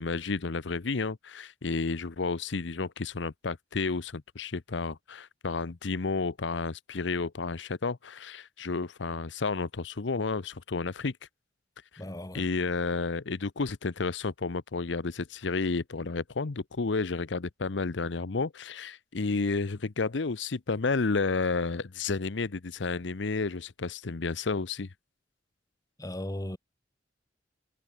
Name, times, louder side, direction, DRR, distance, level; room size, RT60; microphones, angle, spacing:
voice 1, 0.0-11.1 11.9-12.0 12.3-24.9, left 4 dB, 75° left, 0.8 m, -31 dB
voice 2, 12.0-12.5 26.0-26.6, left 1 dB, 20° left, 1.9 m, -37 dB
head